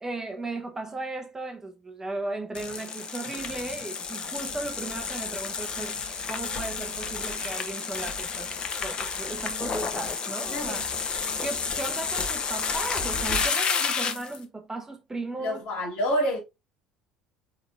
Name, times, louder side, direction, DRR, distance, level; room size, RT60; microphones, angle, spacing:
voice 1, 0.0-5.9 6.3-8.5 8.8-10.9 11.4-15.6, right 2 dB, 15° right, 0.7 m, -36 dB
sound 1, 2.5-14.4, left 5 dB, 35° left, 0.6 m, -31 dB
voice 2, 10.5-10.8 15.4-16.4, equal, 55° left, 1.5 m, -28 dB
3.7 x 2.9 x 2.4 m
figure-of-eight pair, 60°, 3 cm